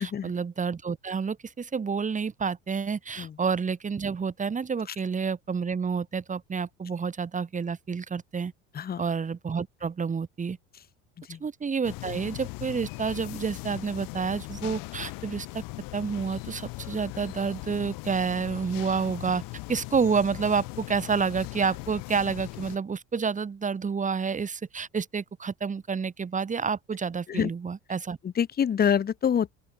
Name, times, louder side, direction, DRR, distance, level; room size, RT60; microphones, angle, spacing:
voice 1, 0.0-8.5 9.0-10.6 11.4-15.6 15.9-19.4 19.7-28.2, right 5 dB, 20° right, 1.2 m, -29 dB
sound 1, 11.8-22.8, left 26 dB, 65° left, 3.7 m, -39 dB
voice 2, 28.2-29.5, left 8 dB, 25° left, 0.9 m, -26 dB
open air
hypercardioid pair, 80°, 36 cm